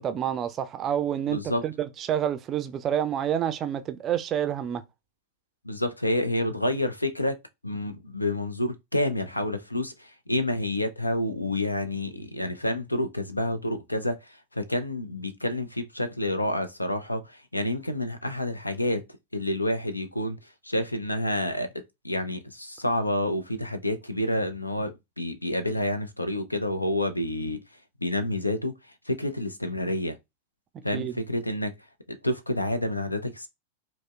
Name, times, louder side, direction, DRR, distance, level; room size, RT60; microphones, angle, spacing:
voice 1, 0.0-4.8 30.9-31.1, right 10 dB, 30° right, 0.4 m, -28 dB
voice 2, 1.3-1.6 5.6-7.4 7.6-19.0 19.3-28.7 29.1-30.2 30.8-31.7 32.1-33.5, left 1 dB, 85° left, 0.4 m, -29 dB
5.0 x 2.0 x 2.3 m
figure-of-eight pair, 90°, 0 cm